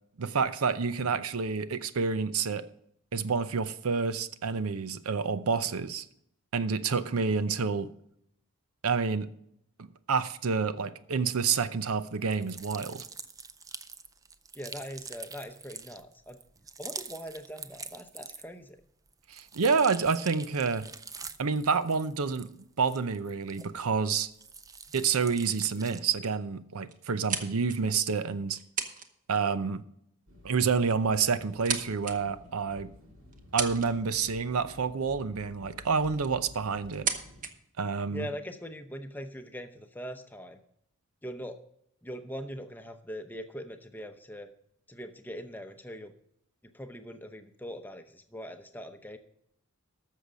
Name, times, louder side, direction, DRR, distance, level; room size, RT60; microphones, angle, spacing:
voice 1, 0.2-2.6 3.1-6.0 6.5-7.9 8.8-9.3 9.8-13.0 19.3-20.9 21.4-22.5 22.8-24.3 24.9-28.6 29.3-29.8 30.4-32.9 33.5-37.1 37.8-38.3, right 5 dB, 85° right, 0.7 m, -28 dB
sound 1, 12.2-18.7 19.1-24.0 24.3-26.2, right 5 dB, 15° right, 0.3 m, -45 dB
voice 2, 14.6-16.4 16.8-18.8 38.1-40.6 41.2-41.6 42.0-44.5 44.9-46.1 46.6-49.2, equal, 10° left, 0.7 m, -41 dB
sound 2, 20.1-22.7 23.6-23.7 24.0-24.3 24.9-25.2 25.4-25.5 25.8-26.4 26.9-28.0 28.5-29.1 29.4-29.6 30.7-30.8 31.3-32.1 32.7-32.8 33.3-34.2 35.5-35.6 36.0-36.4 36.9-37.5, right 6 dB, 35° right, 0.9 m, -37 dB
sound 3, 30.3-37.5, left 1 dB, 60° right, 2.7 m, -52 dB
13.5 x 6.5 x 5.1 m
head